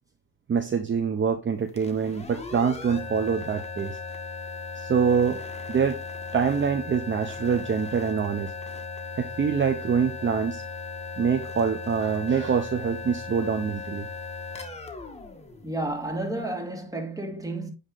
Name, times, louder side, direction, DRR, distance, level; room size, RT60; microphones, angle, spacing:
voice 1, 0.5-4.0 4.7-5.4 5.7-6.0 6.3-8.5 9.1-10.6 11.2-14.1, right 6 dB, 40° right, 0.9 m, -25 dB
sound 1, 1.7-16.3, left 4 dB, 20° left, 1.5 m, -37 dB
voice 2, 15.6-17.7, right 2 dB, 10° right, 2.1 m, -31 dB
9.1 x 3.2 x 3.8 m
cardioid pair, 90°, 30 cm